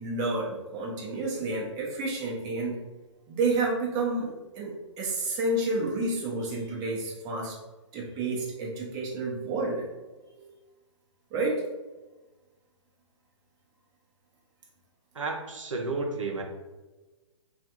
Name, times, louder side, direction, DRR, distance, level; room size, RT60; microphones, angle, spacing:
voice 1, 0.0-2.8 3.3-7.5 7.9-9.8 10.3-10.5 11.3-11.6, right 2 dB, 25° right, -3 dB, 0.8 m, -30 dB
voice 2, 15.1-16.4, right 3 dB, 85° right, 1 dB, 0.6 m, -32 dB
3.3 x 2.3 x 2.8 m, 1.2 s
hypercardioid pair, 130°, 16 cm